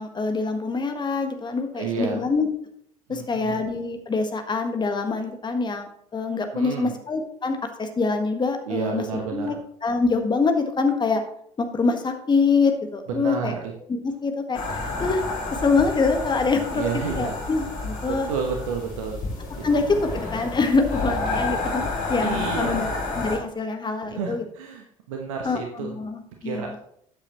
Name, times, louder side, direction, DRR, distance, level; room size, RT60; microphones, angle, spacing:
voice 1, 0.0-2.5 3.1-9.6 9.8-11.2 11.6-13.5 13.9-15.2 15.5-16.9 17.1-18.3 19.6-24.4 25.4-26.8, left 4 dB, 25° left, 6 dB, 1.5 m, -25 dB
voice 2, 1.8-2.2 3.1-3.6 6.5-6.9 8.7-9.6 13.2-13.6 16.7-17.4 18.3-19.2 22.2-22.8 24.0-25.9 26.4-26.8, right 6 dB, 70° right, 2 dB, 1.2 m, -30 dB
sound 1, 14.5-23.4, left 2 dB, 50° left, 3.3 m, -30 dB
13.0 x 8.7 x 3.1 m, 0.68 s
figure-of-eight pair, 55°, 18 cm